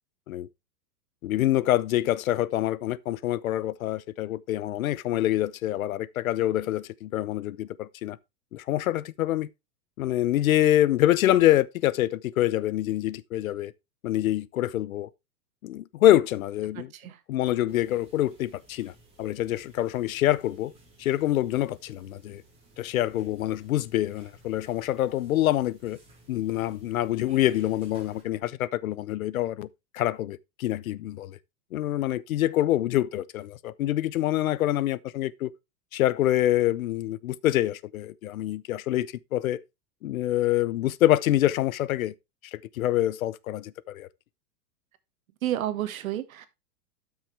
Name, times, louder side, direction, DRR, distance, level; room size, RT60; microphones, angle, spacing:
voice 1, 1.2-8.2 8.5-9.5 10.0-13.7 14.0-15.1 15.6-16.9 17.3-18.9 19.2-20.7 21.0-22.4 22.8-26.0 26.3-29.7 29.9-31.4 31.7-35.5 35.9-39.6 40.0-42.1 42.4-44.1, left 13 dB, 60° left, 0.6 m, -26 dB
sound 1, 17.7-28.2, right 1 dB, 10° right, 2.7 m, -56 dB
voice 2, 45.4-46.5, right 12 dB, 60° right, 1.6 m, -30 dB
12.5 x 6.3 x 3.2 m
supercardioid pair, 175°, 47 cm